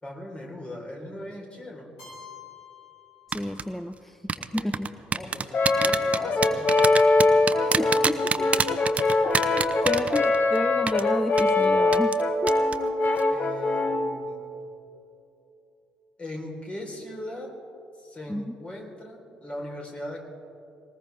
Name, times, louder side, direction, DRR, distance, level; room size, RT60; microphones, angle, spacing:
voice 1, 0.0-1.9 4.4-4.7 5.0-7.0 9.8-10.5 13.3-14.5 16.2-17.6 18.0-20.2, left 1 dB, 25° left, 0 dB, 3.9 m, -39 dB
Keyboard (musical), 2.0-3.9, left 6 dB, 75° left, 4.7 m, -48 dB
voice 2, 3.3-4.9 7.6-8.5 9.0-12.2 12.4-12.5 18.3-18.5, left 1 dB, 5° left, 11 dB, 0.5 m, -31 dB
sound 1, 3.3-3.6 4.3-10.6 10.9-11.0 11.4-11.5 11.9-12.2 12.5-12.8 13.1-13.2, right 5 dB, 30° right, 0.8 m, -25 dB
Brass instrument, 5.5-14.1, left 2 dB, 40° left, 1.3 m, -23 dB
20.5 x 19.5 x 3.5 m, 2.9 s
figure-of-eight pair, 50°, 4 cm